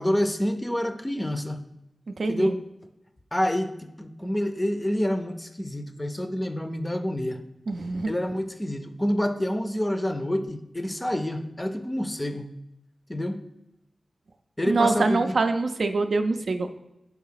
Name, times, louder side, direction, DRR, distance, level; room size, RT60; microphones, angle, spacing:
voice 1, 0.0-1.6 2.3-2.6 3.3-7.4 8.1-12.5 13.1-13.4 14.6-15.4, equal, 15° left, 8 dB, 0.5 m, -27 dB
voice 2, 2.2-2.6 7.7-8.1 14.7-16.7, right 3 dB, 75° right, 7 dB, 0.4 m, -25 dB
4.7 x 4.0 x 5.6 m, 0.89 s
wide cardioid pair, 90°, 0 cm